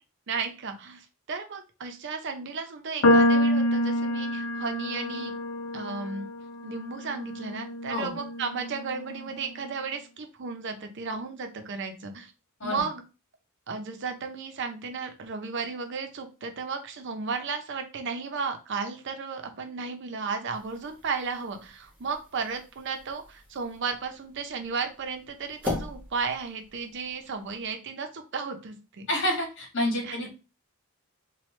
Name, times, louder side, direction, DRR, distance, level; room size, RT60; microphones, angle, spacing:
voice 1, 0.3-5.3 5.7-6.3 6.6-12.3 12.6-13.0 13.7-29.1 30.0-30.3, right 5 dB, 55° right, 6 dB, 0.5 m, -34 dB
sound 1, 3.0-9.4, left 1 dB, 75° left, 0.6 m, -27 dB
sound 2, 20.5-27.7, left 2 dB, 10° right, 1.1 m, -41 dB
voice 2, 29.1-30.3, left 1 dB, 55° left, -1 dB, 1.4 m, -28 dB
3.0 x 2.2 x 3.1 m, 0.31 s
head